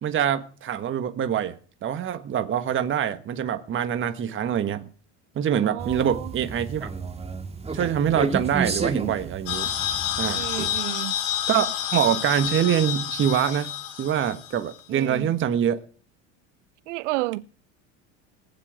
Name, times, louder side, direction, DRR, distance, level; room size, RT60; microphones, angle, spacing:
voice 1, 0.0-1.6 1.8-4.9 5.3-6.9 7.7-9.7 10.2-10.5 11.5-15.8, right 9 dB, 35° right, 1.4 m, -25 dB
voice 2, 5.7-6.0 10.3-11.1 14.9-15.3 16.9-17.4, right 20 dB, 85° right, 0.7 m, -30 dB
sound 1, 5.8-10.8, right 4 dB, 15° right, 2.2 m, -32 dB
sound 2, 9.5-14.7, left 11 dB, 80° left, 4.2 m, -29 dB
20.5 x 7.6 x 9.2 m
supercardioid pair, 105°, 35 cm